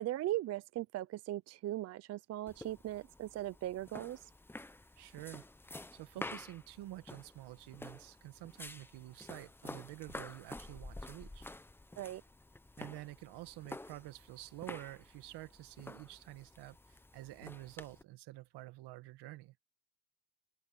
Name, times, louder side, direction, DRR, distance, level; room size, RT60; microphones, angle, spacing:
voice 1, 0.0-4.3 12.0-12.2, right 14 dB, 35° right, 0.4 m, -39 dB
sound 1, 2.5-18.0, left 2 dB, 5° left, 0.7 m, -50 dB
voice 2, 5.0-5.4 5.9-11.5 12.8-19.5, right 17 dB, 60° right, 1.4 m, -49 dB
cardioid pair, 135°, 46 cm